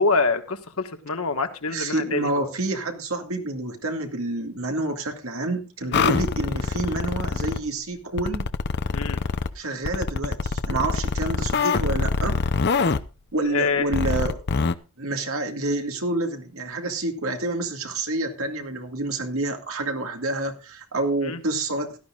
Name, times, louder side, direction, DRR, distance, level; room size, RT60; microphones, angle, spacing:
voice 1, 0.0-2.5 5.9-6.1 8.9-9.2 13.5-13.9 21.2-21.4, left 4 dB, 75° left, 1.5 m, -25 dB
voice 2, 1.7-8.5 9.6-12.4 13.3-14.4 15.0-22.0, right 2 dB, 70° right, 2.2 m, -28 dB
sound 1, 5.9-7.6 8.2-9.5 9.9-13.0 13.9-14.7, left 4 dB, 50° left, 0.6 m, -24 dB
16.5 x 13.0 x 2.4 m
head